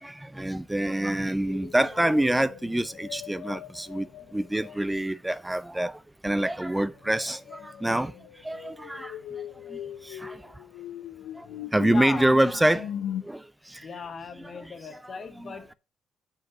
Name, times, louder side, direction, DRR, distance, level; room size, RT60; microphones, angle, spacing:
voice 1, 0.0-8.1 8.4-9.2 9.7-10.5 11.4-12.9 13.2-13.9 14.4-14.7 15.0-15.6, right 1 dB, 10° right, 0.3 m, -27 dB
sound 1, 1.4-5.1 6.3-13.2, left 10 dB, 75° left, 0.6 m, -40 dB
voice 2, 11.8-12.4 12.6-12.8 13.8-15.7, left 5 dB, 50° left, 1.2 m, -37 dB
5.6 x 5.4 x 6.2 m
hypercardioid pair, 50°, 0 cm